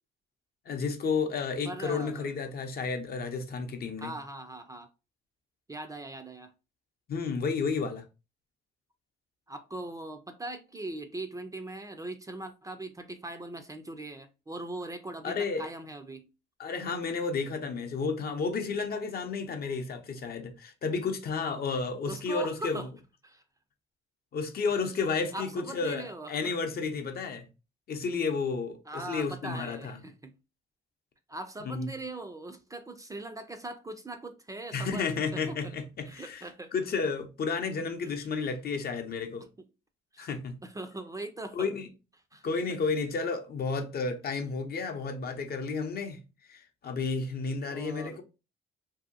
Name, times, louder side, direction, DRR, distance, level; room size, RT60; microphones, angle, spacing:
voice 1, 0.7-4.1 7.1-8.0 15.2-15.7 16.6-22.9 24.3-27.5 27.9-30.0 31.7-31.9 34.7-36.5 36.7-39.5 40.2-40.6 41.5-41.9 42.4-46.2 46.5-48.2, left 4 dB, 50° left, 0.6 m, -32 dB
voice 2, 1.7-2.3 4.0-4.9 5.7-6.5 9.5-16.3 22.1-22.9 23.2-23.4 25.3-26.3 28.9-30.3 31.3-35.6 36.1-36.7 40.1-40.3 40.6-41.7 42.3-42.8 47.6-48.2, right 2 dB, 15° right, 0.4 m, -40 dB
2.7 x 2.6 x 2.5 m
cardioid pair, 90°, 20 cm